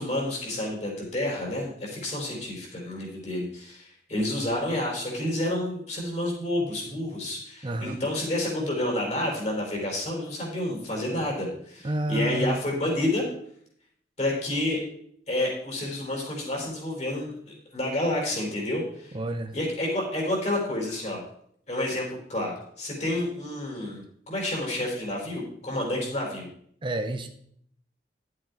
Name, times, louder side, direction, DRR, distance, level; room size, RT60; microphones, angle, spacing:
voice 1, 0.0-13.2 14.2-14.8 15.3-17.3 17.7-19.2 19.5-21.2 21.7-26.5, left 1 dB, 40° left, -1 dB, 4.4 m, -29 dB
voice 2, 7.6-8.0 11.8-12.7 19.1-19.6 26.8-27.3, right 1 dB, 30° right, 7 dB, 0.7 m, -29 dB
11.0 x 7.6 x 4.7 m, 0.66 s
head